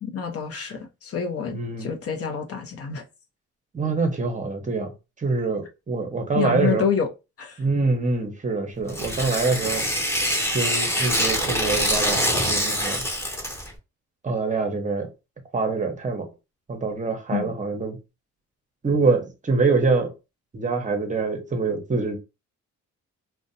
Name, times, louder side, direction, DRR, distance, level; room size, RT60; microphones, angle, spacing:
voice 1, 0.0-3.0 6.3-7.1 7.4-7.6 17.3-17.5, left 7 dB, 50° left, 0.6 m, -27 dB
voice 2, 1.5-1.9 3.7-4.9 5.2-6.9 7.6-9.9 10.5-13.0 14.2-15.1 15.5-16.3 16.7-18.0 18.8-20.1 20.5-22.2, right 3 dB, 25° right, 0.7 m, -25 dB
Tearing, 8.9-13.7, equal, 10° left, 0.9 m, -24 dB
2.5 x 2.1 x 2.6 m
cardioid pair, 90°, 30 cm